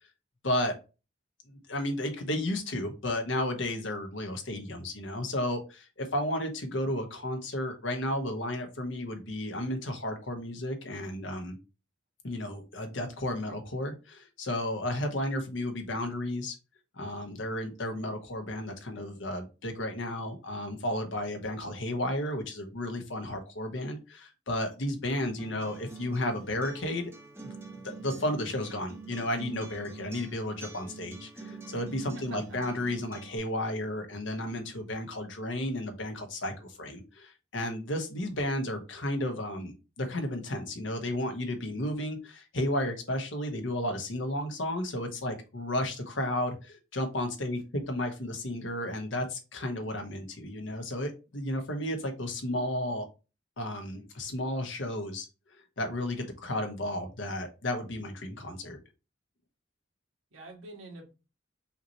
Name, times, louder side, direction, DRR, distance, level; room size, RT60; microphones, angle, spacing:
voice 1, 0.4-0.7 1.7-11.6 12.2-16.5 17.0-27.1 27.4-27.5 27.8-53.1 53.6-55.3 55.8-58.8, left 1 dB, 80° left, 5 dB, 1.1 m, -33 dB
Acoustic guitar, 25.4-33.4, right 3 dB, 15° right, 0.8 m, -46 dB
voice 2, 32.1-32.6 60.3-61.1, right 2 dB, 90° right, 1 dB, 1.5 m, -46 dB
5.6 x 3.0 x 3.0 m, 0.30 s
head